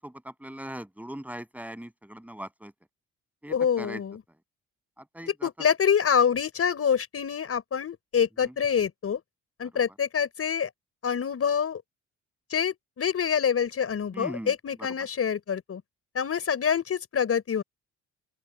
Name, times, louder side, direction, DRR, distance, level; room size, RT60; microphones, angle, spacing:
voice 1, 0.0-2.7 3.4-4.0 5.1-5.5 8.4-8.5 14.1-14.5 14.8-14.9, right 1 dB, 5° right, 7.4 m, -40 dB
voice 2, 3.5-4.2 5.2-9.2 9.6-10.7 11.0-11.8 12.5-15.8 16.1-17.6, left 7 dB, 50° left, 5.8 m, -26 dB
open air
cardioid pair, 90°, 30 cm